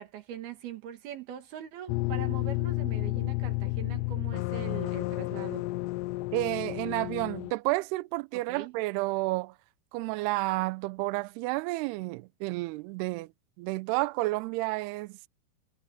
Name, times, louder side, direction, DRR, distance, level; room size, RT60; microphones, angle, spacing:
voice 1, 0.0-5.7 8.3-8.7, right 10 dB, 60° right, 3.8 m, -42 dB
sound 1, 1.9-7.5, left 20 dB, 80° left, 2.5 m, -31 dB
voice 2, 6.3-9.5 9.9-13.3 13.6-15.2, right 21 dB, 90° right, 2.3 m, -31 dB
omnidirectional pair, 5.3 m